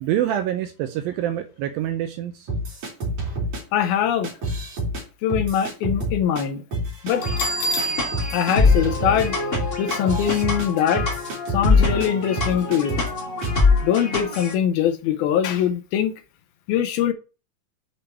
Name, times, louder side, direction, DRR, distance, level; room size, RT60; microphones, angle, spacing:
voice 1, 0.0-2.5, right 11 dB, 80° right, 2.2 m, -26 dB
sound 1, 2.5-3.6 4.2-5.0 5.3-6.4 6.7-7.5 7.8-7.9 8.1-12.1 12.4-13.1 13.4-13.6, right 1 dB, 45° right, 4.5 m, -28 dB
voice 2, 3.7-4.3 5.2-6.6 7.0-7.2 8.3-9.4 9.8-11.1 11.5-13.0 13.8-16.1 16.7-17.1, left 9 dB, 80° left, 2.5 m, -22 dB
sound 2, 7.1-14.5, left 4 dB, 20° left, 2.2 m, -24 dB
Bell, 7.2-9.9, right 1 dB, 60° left, 2.1 m, -29 dB
7.4 x 5.0 x 5.8 m
omnidirectional pair, 4.7 m